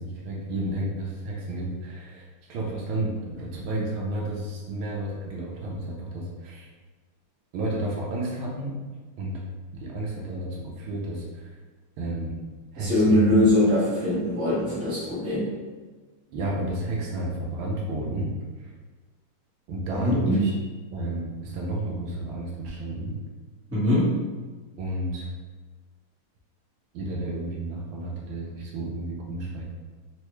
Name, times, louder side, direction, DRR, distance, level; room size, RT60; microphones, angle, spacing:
voice 1, 0.0-6.7 7.5-8.8 9.2-9.4 9.7-11.6 12.0-12.4 12.7-13.3 16.3-18.7 19.7-20.5 20.9-23.2 24.8-25.3 26.9-29.6, right 1 dB, 80° right, -2 dB, 1.5 m, -31 dB
voice 2, 12.8-15.5 19.9-20.4 23.7-24.2, left 1 dB, 10° right, -11 dB, 0.8 m, -22 dB
3.8 x 2.2 x 3.0 m, 1.3 s
omnidirectional pair, 2.3 m